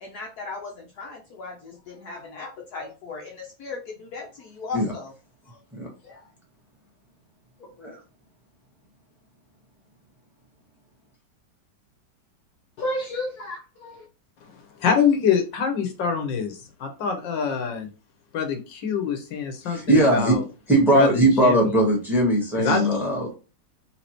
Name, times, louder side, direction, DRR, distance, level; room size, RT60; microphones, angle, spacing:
voice 1, 0.0-5.1 5.5-5.6 6.0-6.2 12.8-14.1, left 2 dB, 65° left, 1 dB, 1.2 m, -35 dB
voice 2, 14.4-17.9 18.3-20.4 20.9-21.8 22.6-23.0, left 6 dB, 80° left, 5 dB, 1.6 m, -25 dB
voice 3, 19.6-20.4 20.7-23.4, right 1 dB, ahead, -2 dB, 1.7 m, -20 dB
4.2 x 3.8 x 3.0 m, 0.33 s
omnidirectional pair, 2.0 m